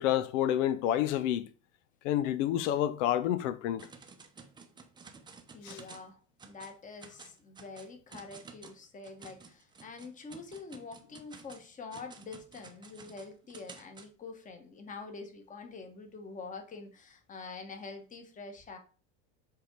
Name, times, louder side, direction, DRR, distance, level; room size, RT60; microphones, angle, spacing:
voice 1, 0.0-1.5 2.0-3.9 5.6-5.8, left 11 dB, 85° left, 0.6 m, -29 dB
sound 1, 3.8-6.1 6.4-6.7 7.0-14.1, right 4 dB, 10° right, 0.7 m, -52 dB
voice 2, 5.5-6.2 6.4-18.8, left 4 dB, 20° left, 1.3 m, -46 dB
7.5 x 3.6 x 4.5 m
supercardioid pair, 135°, 36 cm